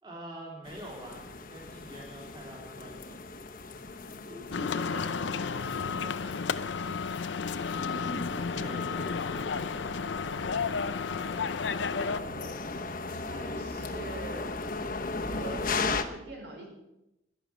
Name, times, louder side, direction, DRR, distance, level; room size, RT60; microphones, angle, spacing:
voice 1, 0.0-3.2 8.5-9.5, right 1 dB, 25° right, -3 dB, 3.0 m, -45 dB
sound 1, 0.6-16.0, left 3 dB, 45° left, 1.0 m, -37 dB
voice 2, 4.3-7.0 11.7-12.7 13.0-14.5 15.3-16.7, right 2 dB, 70° right, 0 dB, 4.7 m, -45 dB
sound 2, 4.5-12.2, left 5 dB, 75° left, 0.6 m, -32 dB
11.5 x 11.0 x 7.6 m, 0.90 s
head